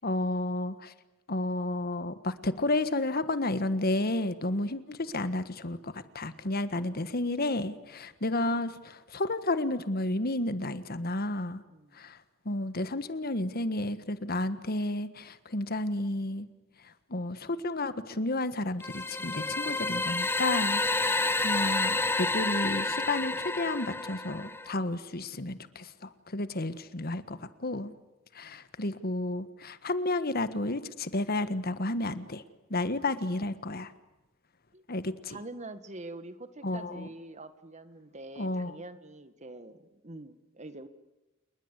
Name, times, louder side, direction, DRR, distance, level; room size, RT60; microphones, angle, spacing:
voice 1, 0.0-0.9 1.3-11.6 11.9-12.2 12.4-16.5 16.8-27.9 28.3-32.4 32.7-33.9 34.9-35.4 36.6-37.1 38.4-38.8, left 2 dB, 50° left, 12 dB, 1.5 m, -32 dB
sound 1, 18.8-24.7, left 2 dB, 10° left, 0.9 m, -29 dB
voice 2, 35.3-40.9, right 2 dB, 35° right, 11 dB, 1.8 m, -45 dB
29.0 x 21.0 x 8.3 m, 1.0 s
head